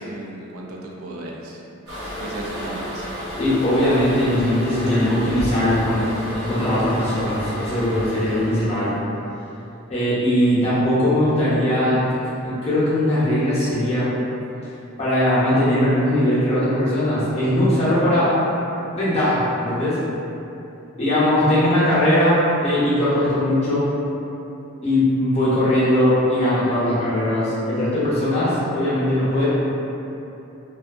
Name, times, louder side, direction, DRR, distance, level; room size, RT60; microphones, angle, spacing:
voice 1, 0.0-1.6 2.2-3.1, right 1 dB, 80° right, -2 dB, 0.4 m, -35 dB
Toilet flush, 1.9-8.9, equal, 55° right, 0.9 m, -31 dB
voice 2, 3.4-6.1 6.5-9.0 9.9-12.0 12.4-14.1 15.0-18.4 18.9-20.0 21.0-23.9 24.8-29.5, left 1 dB, 30° left, -10 dB, 0.6 m, -20 dB
2.5 x 2.3 x 2.4 m, 2.9 s
head